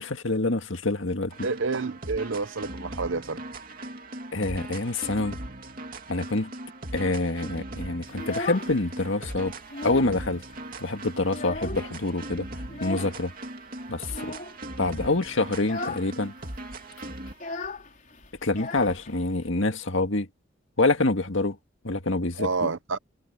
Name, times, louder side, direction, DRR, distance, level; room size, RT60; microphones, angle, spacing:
voice 1, 0.0-1.3 4.3-5.4 6.1-6.5 6.9-9.5 9.8-10.4 10.8-12.5 12.8-13.3 13.9-14.3 14.8-16.3 18.4-20.3 20.8-21.6 21.8-22.7, left 2 dB, 70° left, 1.8 m, -26 dB
sound 1, 1.3-17.4, right 1 dB, 45° right, 2.8 m, -39 dB
voice 2, 1.4-3.4 22.4-23.0, right 4 dB, 65° right, 0.8 m, -29 dB
Child speech kid speaking, 8.1-9.1 9.4-10.2 10.5-10.6 11.0-12.1 12.7-13.2 14.1-14.6 15.0-15.2 15.6-16.1 16.4-16.5 16.7-19.5, left 2 dB, 40° left, 4.7 m, -36 dB
head